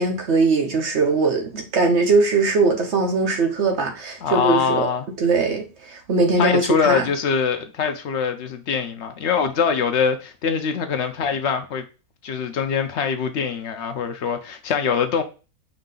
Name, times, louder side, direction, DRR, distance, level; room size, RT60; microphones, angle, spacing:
voice 1, 0.0-4.9 5.2-7.0, right 3 dB, 55° right, 1.0 m, -20 dB
voice 2, 4.2-5.1 6.4-11.8 12.2-15.2, left 6 dB, 60° left, 0.8 m, -23 dB
4.9 x 2.7 x 3.8 m
omnidirectional pair, 1.5 m